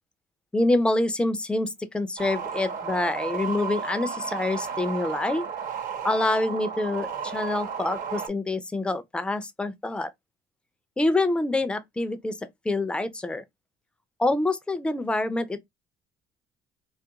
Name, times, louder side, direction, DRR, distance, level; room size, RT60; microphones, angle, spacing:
voice 1, 0.5-5.4 6.0-10.1 11.0-12.4 12.6-13.4 14.2-15.6, left 2 dB, 5° left, 0.4 m, -26 dB
sound 1, 2.2-8.3, right 6 dB, 55° right, 0.7 m, -33 dB
2.4 x 2.1 x 2.8 m
cardioid pair, 110°, 17 cm